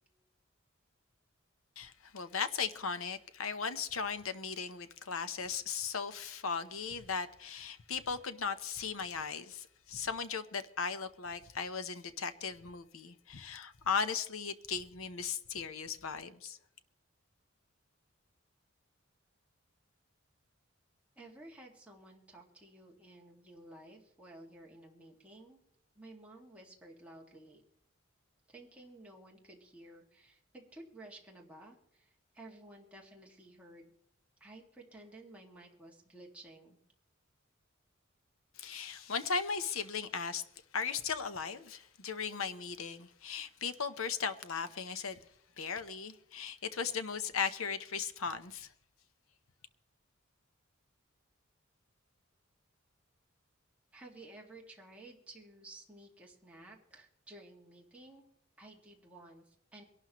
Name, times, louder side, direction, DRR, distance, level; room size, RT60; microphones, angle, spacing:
voice 1, 1.8-16.6 38.6-40.4 40.7-45.2 45.6-48.7, left 6 dB, 85° left, 0.9 m, -37 dB
voice 2, 21.2-25.6 25.9-27.6 28.5-33.9 34.4-36.8 53.9-58.2 58.6-59.8, right 2 dB, 5° right, 2.1 m, -54 dB
23.5 x 12.0 x 3.1 m
head